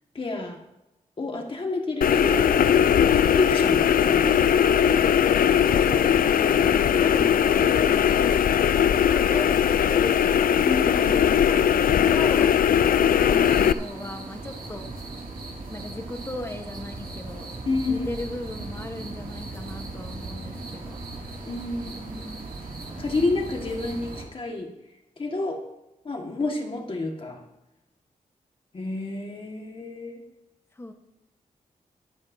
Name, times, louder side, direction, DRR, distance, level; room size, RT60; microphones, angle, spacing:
voice 1, 0.1-0.6 1.2-2.5 3.3-4.4 10.6-11.0 17.7-18.1 21.4-22.5 23.0-24.7 25.2-25.6 26.0-27.4 28.7-30.2, left 3 dB, 40° left, 2 dB, 1.7 m, -29 dB
sound 1, 2.0-13.7, left 8 dB, 75° left, 0.4 m, -20 dB
voice 2, 5.5-8.2 9.1-10.3 10.9-14.9 15.7-17.5 17.9-21.0 30.8-30.9, left 1 dB, 15° left, 5 dB, 1.1 m, -37 dB
sound 2, 13.4-24.2, right 2 dB, 70° right, 2.5 m, -38 dB
23.0 x 8.7 x 2.7 m, 0.92 s
wide cardioid pair, 170°, 15 cm